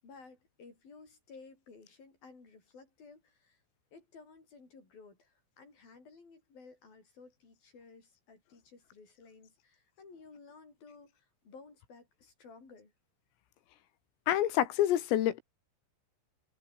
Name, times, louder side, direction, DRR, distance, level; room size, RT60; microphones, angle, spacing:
voice 1, 0.0-3.6 3.9-12.9, left 4 dB, 45° left, 9.4 m, -55 dB
voice 2, 14.3-15.4, left 12 dB, 85° left, 4.7 m, -27 dB
omnidirectional pair, 5.8 m